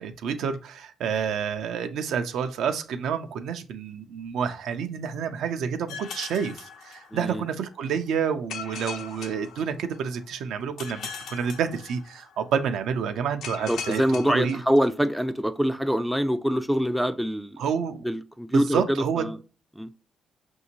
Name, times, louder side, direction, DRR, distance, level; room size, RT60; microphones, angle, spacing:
voice 1, 0.0-14.6 17.6-18.0 18.5-19.3, right 7 dB, 80° right, 0.5 m, -29 dB
sound 1, 5.9-7.5 8.5-10.2 10.8-12.4 13.4-15.2, left 6 dB, 80° left, 0.7 m, -40 dB
voice 2, 7.1-7.4 13.7-17.6 18.0-19.4 19.8-19.9, equal, ahead, 0.4 m, -25 dB
5.8 x 2.7 x 2.8 m
cardioid pair, 90°, 0 cm